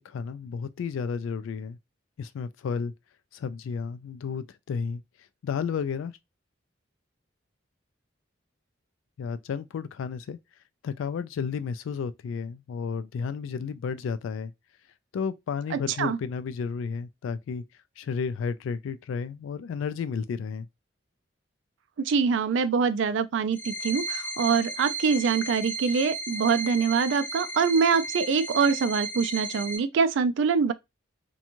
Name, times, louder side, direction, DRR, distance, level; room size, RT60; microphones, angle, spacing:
voice 1, 0.0-1.8 2.2-2.9 3.3-5.0 5.4-6.2 9.2-10.4 10.8-14.5 15.1-17.6 18.0-20.7, left 6 dB, 85° left, 0.3 m, -32 dB
voice 2, 15.7-16.2 22.0-30.7, right 5 dB, 70° right, 0.3 m, -24 dB
sound 1, 23.5-29.8, right 2 dB, 10° left, 0.6 m, -34 dB
2.5 x 2.2 x 2.9 m
head